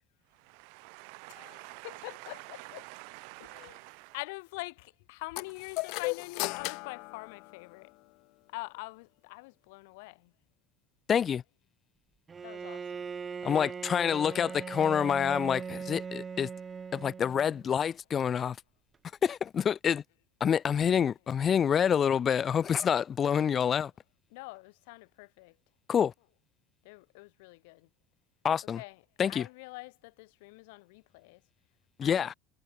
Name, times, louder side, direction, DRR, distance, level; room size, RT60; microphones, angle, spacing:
voice 1, 0.3-4.2, right 40 dB or more, 75° right, 0.7 m, -48 dB
voice 2, 1.4-2.8 3.4-3.8 4.1-7.9 8.5-10.2 12.4-12.8 13.6-13.7 24.3-25.5 26.9-27.8 28.7-29.9 30.2-31.4 32.0-32.3, left 26 dB, 90° left, 0.5 m, -45 dB
sound 1, 5.4-8.0, left 28 dB, 65° left, 1.0 m, -36 dB
voice 3, 11.1-11.4 13.4-16.5 16.9-18.6 19.2-20.0 20.4-23.9 25.9-26.1 28.4-28.8 29.2-29.5 32.0-32.3, left 8 dB, 30° left, 0.4 m, -27 dB
Bowed string instrument, 12.3-17.7, right 6 dB, 20° right, 0.7 m, -40 dB
cardioid pair, 150°, 0 cm